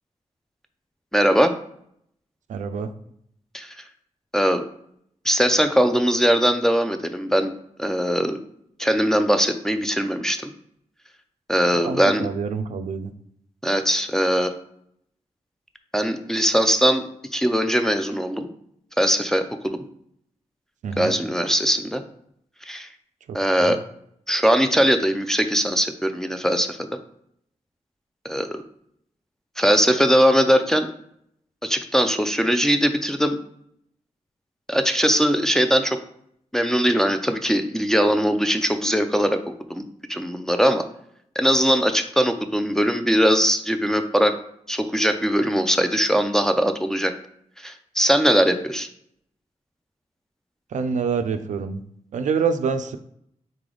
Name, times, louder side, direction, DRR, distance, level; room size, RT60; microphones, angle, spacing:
voice 1, 1.1-1.5 3.5-3.7 4.3-4.6 5.2-8.4 8.8-10.4 11.5-12.3 13.6-14.5 15.9-17.1 17.3-18.5 19.0-19.8 21.0-22.0 22.7-22.9 23.3-23.8 24.3-26.8 28.2-28.6 29.6-30.9 31.6-33.4 34.7-36.0 36.5-39.4 39.7-40.8 41.4-44.4 44.7-47.1 47.6-48.9, equal, 5° left, 6 dB, 0.4 m, -20 dB
voice 2, 2.5-2.9 11.7-13.1 20.8-21.1 23.3-23.8 50.7-51.8 52.1-53.0, right 5 dB, 85° right, 9 dB, 0.4 m, -26 dB
3.9 x 3.3 x 3.8 m, 0.70 s
wide cardioid pair, 90°, 12 cm